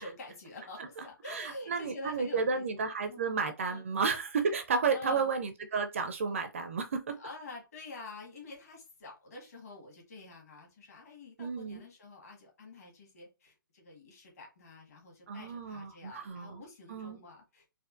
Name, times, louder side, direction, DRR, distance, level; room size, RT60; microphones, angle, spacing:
voice 1, 0.0-3.2 3.7-3.8 4.9-5.3 7.2-17.8, left 2 dB, 45° left, 1.6 m, -47 dB
voice 2, 1.0-7.2 11.4-11.8 15.3-16.6 16.9-17.2, right 5 dB, 35° right, 0.4 m, -32 dB
4.2 x 2.4 x 2.4 m
figure-of-eight pair, 135°, 12 cm